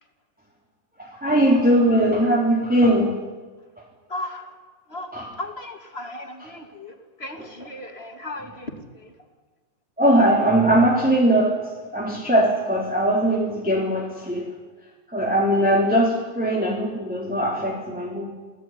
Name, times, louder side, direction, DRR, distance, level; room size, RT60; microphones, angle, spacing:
voice 1, 1.0-3.2 5.1-5.2 7.4-7.5 10.0-11.6 11.9-14.5 15.1-18.3, right 1 dB, ahead, -2 dB, 3.7 m, -20 dB
voice 2, 4.1-4.5 4.9-9.1, left 1 dB, 20° left, 5 dB, 2.5 m, -36 dB
27.5 x 18.0 x 9.8 m, 1.4 s
omnidirectional pair, 3.9 m